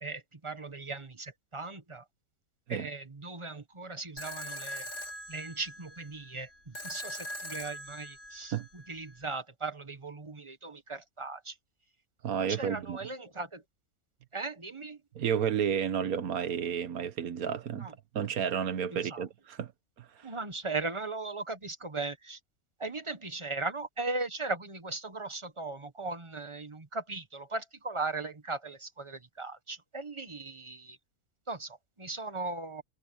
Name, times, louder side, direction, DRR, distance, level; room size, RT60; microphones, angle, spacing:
voice 1, 0.0-2.0 2.7-4.8 5.3-6.5 6.8-8.5 8.9-11.5 12.6-13.6 14.3-15.0 17.8-17.9 19.1-19.2 20.2-22.4 22.8-31.0 31.5-31.7 32.0-32.8, right 3 dB, 20° right, 1.3 m, -38 dB
sound 1, 4.2-9.2, left 1 dB, 75° left, 3.8 m, -42 dB
voice 2, 12.2-13.0 15.1-19.7 20.0-20.3, right 8 dB, 80° right, 1.6 m, -32 dB
omnidirectional pair, 1.5 m